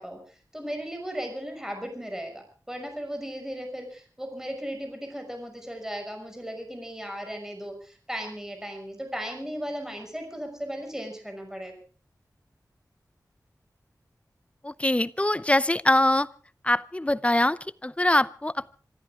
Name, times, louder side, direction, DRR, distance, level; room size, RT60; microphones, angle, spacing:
voice 1, 0.0-11.7, equal, 5° right, 4 dB, 6.1 m, -36 dB
voice 2, 14.6-16.3 16.6-18.7, left 1 dB, 20° left, 17 dB, 0.7 m, -23 dB
26.5 x 14.0 x 3.7 m, 0.39 s
wide cardioid pair, 65°, 7 cm